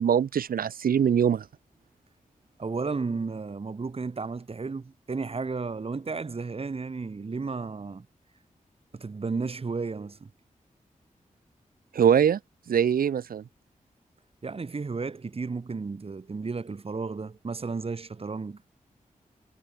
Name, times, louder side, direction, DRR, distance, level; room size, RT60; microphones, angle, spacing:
voice 1, 0.0-1.4 11.9-12.4 12.7-13.4, right 8 dB, 90° right, 0.9 m, -22 dB
voice 2, 2.6-8.1 8.9-10.3 14.4-18.6, right 4 dB, 40° right, 0.9 m, -33 dB
cardioid pair, 50°, 15 cm